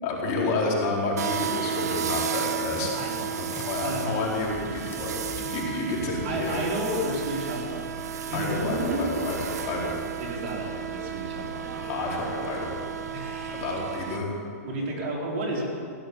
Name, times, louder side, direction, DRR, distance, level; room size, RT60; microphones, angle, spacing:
voice 1, 0.0-2.9 3.4-6.6 8.3-10.0 11.8-12.8 13.6-14.4, left 2 dB, 40° left, -3 dB, 4.1 m, -30 dB
sound 1, 1.2-14.2, right 8 dB, 80° right, 1.0 m, -33 dB
sound 2, 2.5-13.9, left 2 dB, 25° left, 1.6 m, -45 dB
voice 2, 2.9-3.4 3.8-4.1 6.2-9.0 10.2-11.9 13.1-13.7 14.6-15.6, right 1 dB, 50° right, -2 dB, 4.5 m, -32 dB
16.0 x 10.5 x 7.4 m, 2.4 s
hypercardioid pair, 130°, 9 cm